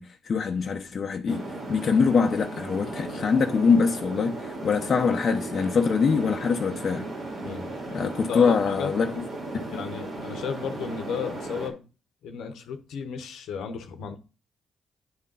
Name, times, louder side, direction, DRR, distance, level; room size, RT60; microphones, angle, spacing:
voice 1, 0.0-7.0 7.9-9.2, left 5 dB, 55° left, 0.8 m, -24 dB
sound 1, 1.3-11.7, right 2 dB, 65° right, 3.1 m, -36 dB
voice 2, 7.4-8.9 9.7-11.8 12.2-14.2, left 6 dB, 75° left, 1.0 m, -34 dB
9.6 x 3.8 x 5.4 m
hypercardioid pair, 45°, 0 cm